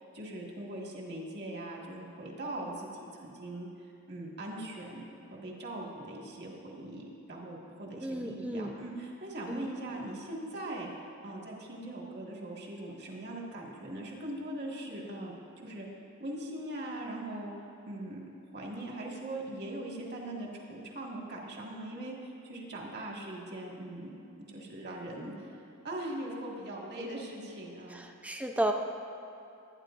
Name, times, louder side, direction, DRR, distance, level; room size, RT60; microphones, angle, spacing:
voice 1, 0.1-5.0 5.3-10.9 11.2-15.9 16.2-17.5 17.9-18.2 18.5-24.1 24.5-25.6 25.8-28.0, right 1 dB, 50° right, -2 dB, 1.9 m, -41 dB
voice 2, 8.0-8.7 9.5-9.7 27.9-28.7, right 1 dB, 5° right, 3 dB, 0.6 m, -33 dB
19.5 x 9.6 x 2.6 m, 2.6 s
head